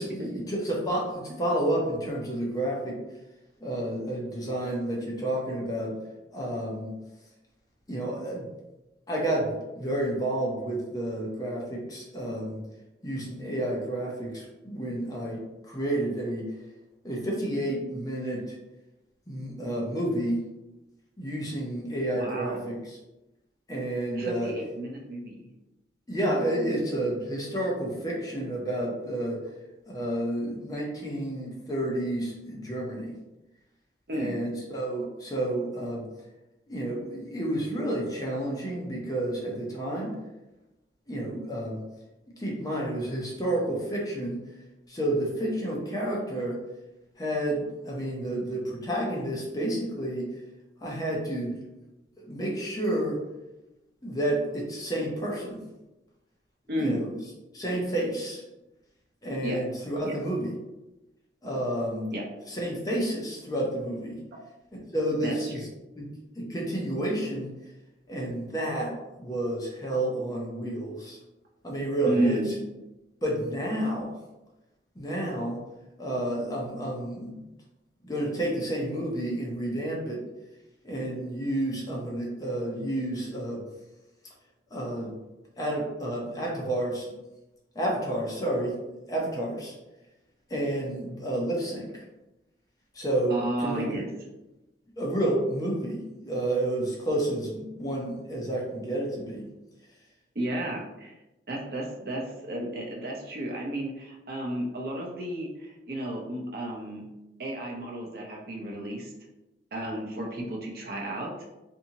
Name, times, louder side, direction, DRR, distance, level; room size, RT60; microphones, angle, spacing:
voice 1, 0.0-3.0 3.6-5.9 6.3-6.9 7.9-8.5 9.1-12.6 13.0-15.4 15.7-16.5 17.0-18.6 19.3-20.4 21.2-22.7 23.7-24.5 26.1-29.4 29.9-33.1 34.1-36.0 36.7-40.2 41.1-41.8 42.4-44.4 44.9-46.6 47.2-50.3 50.8-51.6 52.2-53.2 54.0-55.6 56.8-57.1 57.5-58.4 59.2-60.5 61.4-62.1 62.5-64.2 64.9-65.6 66.0-66.1 66.3-67.5 68.1-71.2 71.6-72.4 73.2-74.1 75.0-75.6 76.0-77.4 78.0-80.2 80.8-83.6 84.7-85.1 85.6-87.1 87.7-88.7 89.1-89.7 90.5-92.0 92.9-94.0 95.0-99.5, right 1 dB, 20° left, -2 dB, 0.6 m, -30 dB
voice 2, 22.1-22.6 24.1-25.5 34.1-34.4 56.7-57.0 59.4-59.6 60.0-60.2 62.1-62.2 65.2-65.3 72.0-72.5 93.3-94.1 100.3-101.1 101.5-107.1 107.4-109.1 109.7-111.3, right 1 dB, 55° right, -1 dB, 0.6 m, -32 dB
2.7 x 2.6 x 2.8 m, 0.99 s
head